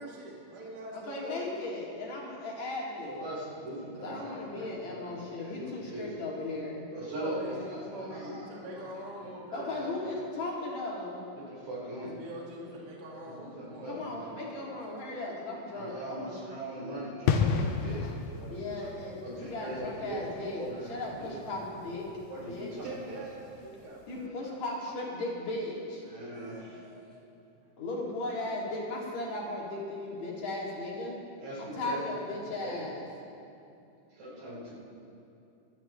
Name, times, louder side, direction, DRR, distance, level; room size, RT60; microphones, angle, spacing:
voice 1, 0.0-1.4 7.2-10.1 12.0-13.9 22.8-24.6 24.9-25.0 26.3-27.2, right 1 dB, 35° right, -3 dB, 1.9 m, -44 dB
voice 2, 1.0-3.2 4.0-6.9 9.5-11.2 13.9-16.3 18.5-22.1 22.5-22.7 24.1-26.0 27.8-31.2 31.8-33.0, left 2 dB, 60° left, -4 dB, 3.5 m, -36 dB
voice 3, 3.0-6.1 6.9-8.9 9.2-9.9 11.4-12.2 13.1-14.3 15.7-18.1 18.4-20.2 20.5-21.4 22.3-23.2 26.0-26.8 31.4-32.1 32.6-33.1 34.1-34.7, right 1 dB, 85° right, -6 dB, 5.9 m, -41 dB
sound 1, 17.3-23.8 24.0-24.2, left 6 dB, 90° left, 2.4 m, -33 dB
23.5 x 13.0 x 3.1 m, 2.6 s
omnidirectional pair, 3.8 m